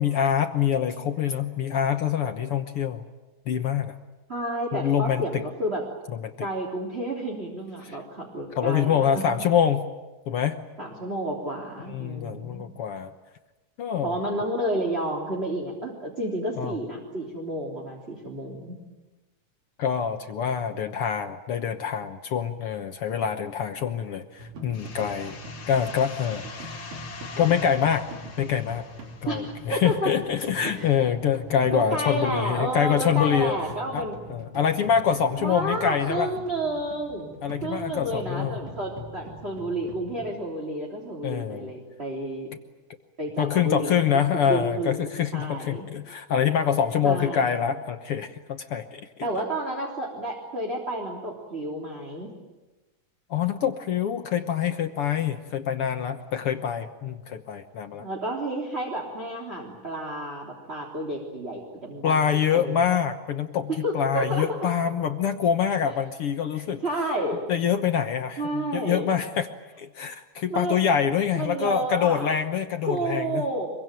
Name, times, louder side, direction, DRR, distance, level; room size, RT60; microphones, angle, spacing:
voice 1, 0.0-3.0 3.5-4.0 4.7-5.4 6.2-6.5 7.8-8.0 8.5-9.9 10.3-10.6 11.9-13.1 13.8-14.2 16.6-16.8 19.8-25.4 25.7-26.8 27.4-28.1 28.4-28.9 29.2-33.5 33.9-36.3 37.4-38.6 41.2-41.7 43.4-49.1 53.3-58.1 62.0-63.7 63.9-66.8 67.5-69.5 69.8-73.5, left 8 dB, 65° left, 7 dB, 1.5 m, -25 dB
voice 2, 4.3-5.8 6.4-9.2 10.8-12.6 14.0-18.8 29.3-30.1 30.6-30.9 31.7-34.2 35.4-42.5 43.2-44.2 44.5-45.0 45.3-45.9 47.0-47.5 49.2-52.3 58.0-62.3 62.5-63.0 63.7-64.6 65.9-66.0 66.5-67.4 68.4-69.1 70.5-70.8 71.3-72.3 72.8-73.7, right 1 dB, 20° right, -2 dB, 3.5 m, -31 dB
sound 1, 24.4-40.3, right 1 dB, 85° right, 4.7 m, -43 dB
sound 2, 24.7-30.2, left 4 dB, 35° left, 1.9 m, -43 dB
25.0 x 23.5 x 9.1 m, 1.1 s
omnidirectional pair, 3.8 m